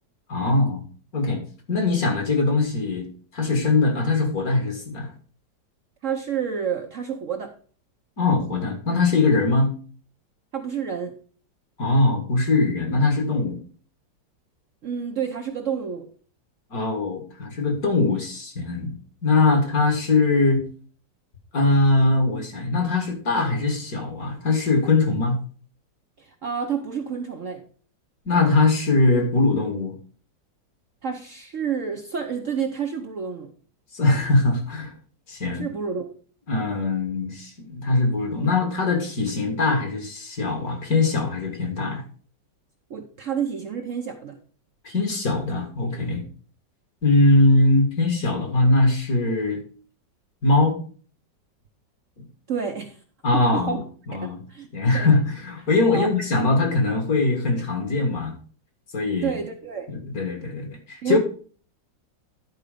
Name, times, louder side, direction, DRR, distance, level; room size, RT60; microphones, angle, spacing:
voice 1, 0.3-0.8 1.1-1.4 1.7-3.1 3.3-5.1 8.2-9.7 11.8-13.6 16.7-20.6 21.5-25.4 28.3-29.9 33.9-34.9 35.3-35.6 36.5-42.0 44.8-46.2 47.0-49.6 50.4-50.8 53.2-53.8 54.1-54.4 54.7-58.3 58.9-59.4 59.9-61.2, left 2 dB, 50° left, 4 dB, 2.1 m, -21 dB
voice 2, 6.0-7.5 10.5-11.1 14.8-16.1 26.2-27.6 31.0-33.5 35.5-36.1 42.9-44.4 52.5-53.0 53.3-53.8 54.2-54.7 54.9-55.1 55.9-56.1 59.2-59.9 61.0-61.2, right 7 dB, 55° right, 4 dB, 0.9 m, -29 dB
11.0 x 4.8 x 5.0 m, 0.42 s
omnidirectional pair, 2.0 m